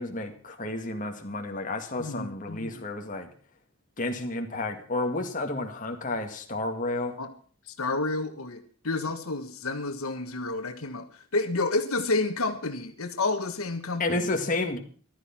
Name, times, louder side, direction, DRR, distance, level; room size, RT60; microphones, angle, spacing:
voice 1, 0.0-3.3 4.0-7.2 14.0-14.8, left 2 dB, 35° left, 4 dB, 2.0 m, -31 dB
voice 2, 2.0-2.8 7.2-7.3 7.7-14.3, left 3 dB, 85° left, 7 dB, 1.5 m, -30 dB
14.5 x 12.5 x 5.9 m, 0.43 s
head